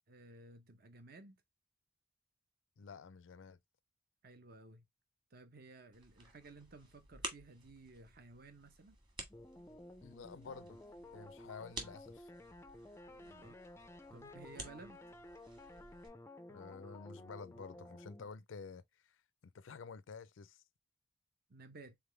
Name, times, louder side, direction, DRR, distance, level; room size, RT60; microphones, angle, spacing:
voice 1, 0.1-1.4 4.2-4.9 5.3-9.0 13.2-13.6 14.1-15.0 21.5-22.0, right 3 dB, 50° right, 0.8 m, -56 dB
voice 2, 2.8-3.6 10.0-10.8 11.1-12.3 16.5-19.2 19.4-20.6, left 5 dB, 85° left, 0.4 m, -51 dB
sound 1, 5.9-16.1, right 2 dB, 25° right, 1.4 m, -52 dB
sound 2, 9.3-18.3, left 1 dB, 15° left, 0.4 m, -54 dB
3.8 x 3.5 x 3.3 m
head